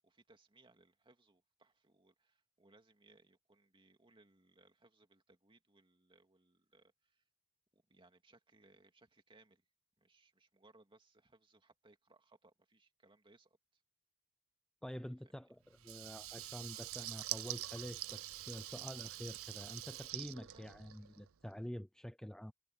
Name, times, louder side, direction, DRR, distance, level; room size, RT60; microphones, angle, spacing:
voice 1, 0.0-7.2 7.7-9.6 10.0-13.8 14.9-15.5 20.5-20.7, right 2 dB, 25° right, 2.4 m, -68 dB
voice 2, 14.8-22.5, equal, 5° left, 0.5 m, -47 dB
Water tap faucet / Liquid, 15.8-21.3, right 15 dB, 65° right, 0.6 m, -45 dB
head